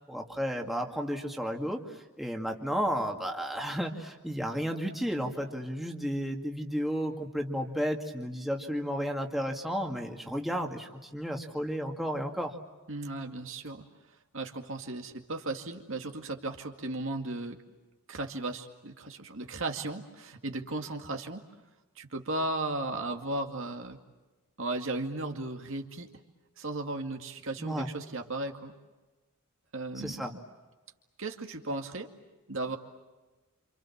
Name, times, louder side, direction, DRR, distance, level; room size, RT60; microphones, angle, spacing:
voice 1, 0.1-1.8 2.2-12.5 27.6-27.9 30.0-30.3, equal, ahead, 1 dB, 2.2 m, -33 dB
voice 2, 12.9-13.8 14.3-17.6 18.1-21.4 22.0-24.0 24.6-26.1 26.6-28.7 29.7-30.2 31.2-32.1 32.5-32.8, right 2 dB, 60° right, 4 dB, 2.2 m, -35 dB
28.0 x 28.0 x 7.4 m, 1.2 s
head